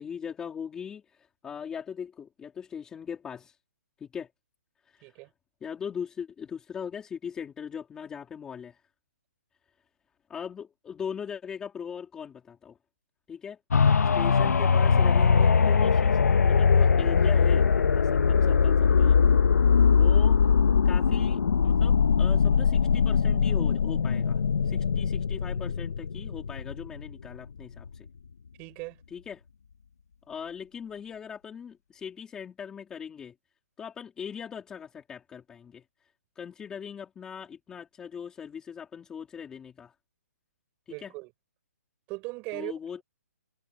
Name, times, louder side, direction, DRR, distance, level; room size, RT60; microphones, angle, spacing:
voice 1, 0.0-3.6 4.0-4.3 4.9-5.2 5.6-8.8 10.3-12.8 13.3-13.6 14.1-16.2 16.4-17.7 17.9-19.2 19.9-20.4 20.8-28.1 29.1-29.4 30.3-33.3 33.8-35.8 36.4-39.9 41.0-41.1 42.5-43.0, left 7 dB, 10° left, 3.6 m, -40 dB
sound 1, 13.7-27.4 27.9-28.0, left 6 dB, 80° left, 1.0 m, -21 dB
voice 2, 28.6-29.0 40.9-41.3 42.1-42.7, right 25 dB, 20° right, 6.9 m, -38 dB
hypercardioid pair, 175°, 9 cm